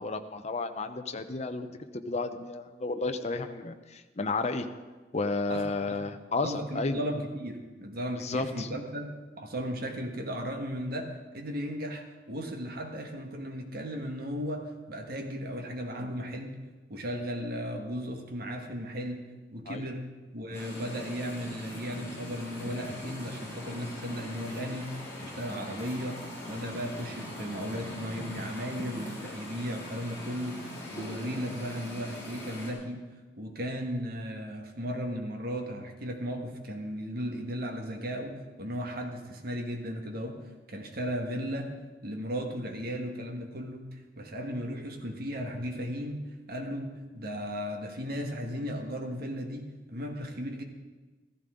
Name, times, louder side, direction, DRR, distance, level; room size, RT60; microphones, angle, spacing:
voice 1, 0.0-4.7 5.1-7.0 8.2-8.8 19.7-19.9, left 3 dB, 40° left, 7 dB, 0.8 m, -32 dB
voice 2, 5.5-6.0 6.4-16.6 16.9-19.2 19.5-20.1 20.3-26.2 26.5-30.6 30.9-33.0 33.4-40.4 40.7-41.7 42.0-50.6, equal, 55° right, 3 dB, 1.6 m, -36 dB
sound 1, 20.5-32.7, left 1 dB, 15° left, 4.5 m, -41 dB
14.5 x 14.5 x 3.8 m, 1.3 s
head